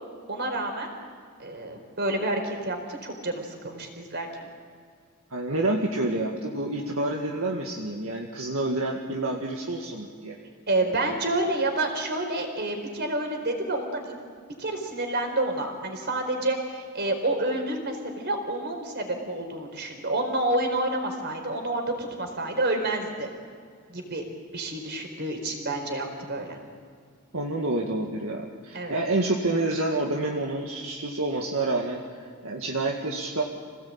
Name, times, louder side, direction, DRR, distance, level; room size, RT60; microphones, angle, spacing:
voice 1, 0.3-0.9 1.4-4.5 10.7-14.2 14.6-23.3 23.9-24.2 24.5-26.6 28.7-29.0, right 2 dB, 50° right, 4 dB, 4.4 m, -29 dB
voice 2, 5.3-10.4 27.3-33.4, right 2 dB, 70° right, 0 dB, 2.1 m, -28 dB
27.0 x 18.0 x 8.8 m, 2.1 s
head